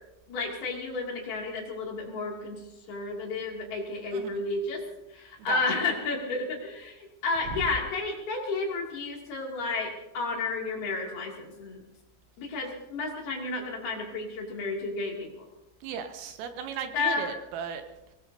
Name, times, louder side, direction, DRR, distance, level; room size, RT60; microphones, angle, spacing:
voice 1, 0.3-2.6 2.9-4.8 5.1-11.8 12.4-15.5 16.9-17.4, left 3 dB, 55° left, -1 dB, 4.0 m, -32 dB
voice 2, 15.8-17.8, right 7 dB, 90° right, 6 dB, 3.9 m, -36 dB
24.5 x 19.5 x 2.7 m, 0.96 s
omnidirectional pair, 5.9 m